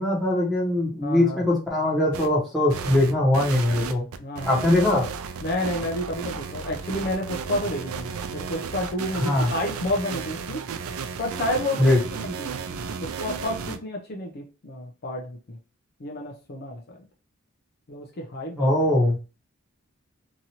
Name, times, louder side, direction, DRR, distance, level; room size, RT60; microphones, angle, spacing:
voice 1, 0.0-4.0 4.5-5.0 9.2-9.5 11.8-12.0 18.6-19.1, left 1 dB, ahead, -3 dB, 1.0 m, -21 dB
voice 2, 1.0-1.5 4.2-4.7 5.4-10.7 11.2-12.7 13.0-15.6 16.0-17.0 17.9-18.8, left 1 dB, 50° left, 1 dB, 0.5 m, -30 dB
sound 1, 2.1-2.3 2.7-13.8, right 6 dB, 85° right, 0.4 m, -34 dB
2.9 x 2.6 x 2.8 m, 0.33 s
head